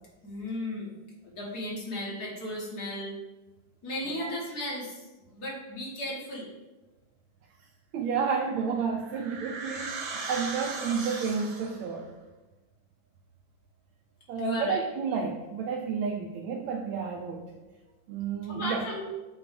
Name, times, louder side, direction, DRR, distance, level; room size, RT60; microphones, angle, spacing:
voice 1, 0.2-0.9 1.2-3.2 3.8-6.5 14.4-14.8 18.5-19.0, left 1 dB, 50° left, -5 dB, 2.1 m, -35 dB
voice 2, 7.9-12.1 14.3-17.5 18.1-18.8, right 5 dB, 80° right, 1 dB, 1.4 m, -31 dB
sound 1, 8.5-11.9, right 4 dB, 60° right, 0.6 m, -38 dB
8.0 x 2.7 x 5.1 m, 1.2 s
omnidirectional pair, 2.2 m